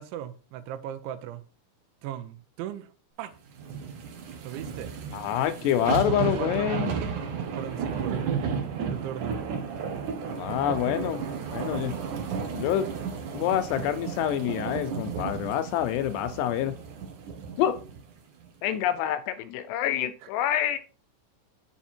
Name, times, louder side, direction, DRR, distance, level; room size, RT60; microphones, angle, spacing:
voice 1, 0.0-1.4 2.0-2.9 3.2-3.3 4.4-4.9 5.9-6.8 7.6-8.3 8.9-9.4 20.2-20.3, right 11 dB, 85° right, 3.2 m, -37 dB
sound 1, 3.6-18.0 18.4-18.5, right 6 dB, 60° right, 2.2 m, -33 dB
voice 2, 5.1-6.9 10.3-11.2 11.5-12.0 12.5-12.9 13.3-16.8 17.6-17.8 18.6-20.8, left 11 dB, 80° left, 2.6 m, -27 dB
7.2 x 7.2 x 4.4 m
omnidirectional pair, 5.2 m